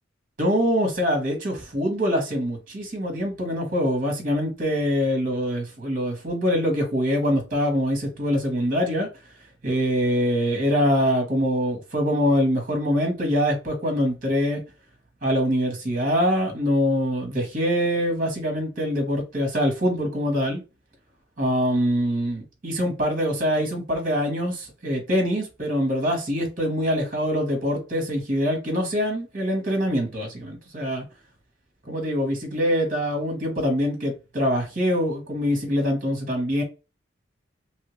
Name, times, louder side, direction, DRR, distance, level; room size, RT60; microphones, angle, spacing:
voice 1, 0.4-9.1 9.6-14.6 15.2-20.6 21.4-31.0 31.8-36.6, equal, 45° right, 1.3 m, -24 dB
3.2 x 2.7 x 3.1 m
head